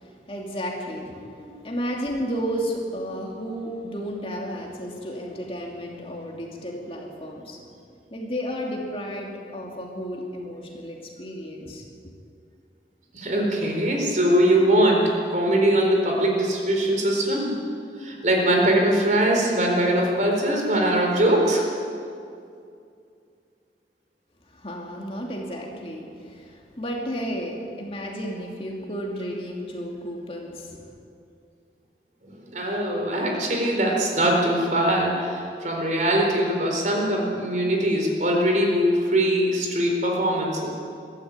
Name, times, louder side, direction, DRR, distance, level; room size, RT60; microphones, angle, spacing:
voice 1, 0.0-7.6 8.1-11.8 24.5-30.8, equal, 30° left, 0 dB, 2.7 m, -32 dB
voice 2, 13.1-17.6 18.0-21.6 32.2-40.7, right 1 dB, 45° right, 0 dB, 4.2 m, -22 dB
21.5 x 13.5 x 9.0 m, 2.4 s
head